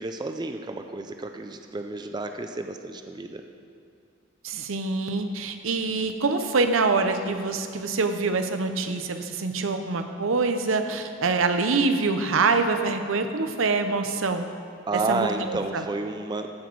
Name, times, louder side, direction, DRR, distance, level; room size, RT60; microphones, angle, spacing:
voice 1, 0.0-3.4 14.9-16.7, right 2 dB, 20° right, 6 dB, 0.4 m, -31 dB
voice 2, 4.4-14.5 14.9-15.8, right 3 dB, 85° right, 7 dB, 0.7 m, -25 dB
15.0 x 6.0 x 4.6 m, 2.4 s
head